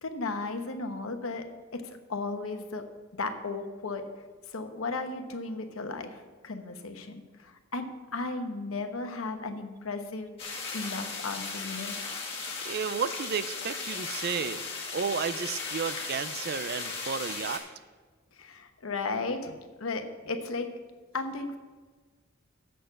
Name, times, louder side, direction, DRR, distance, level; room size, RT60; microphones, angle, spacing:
voice 1, 0.0-1.4 1.7-2.8 3.1-4.1 4.5-7.9 8.1-12.0 18.3-20.7 21.1-21.6, left 3 dB, 85° left, 6 dB, 1.0 m, -35 dB
sound 1, 10.4-17.6, left 4 dB, 30° left, 2.2 m, -36 dB
voice 2, 12.6-14.6 14.9-17.6, right 6 dB, 50° right, 14 dB, 0.4 m, -32 dB
7.7 x 6.7 x 8.0 m, 1.4 s
head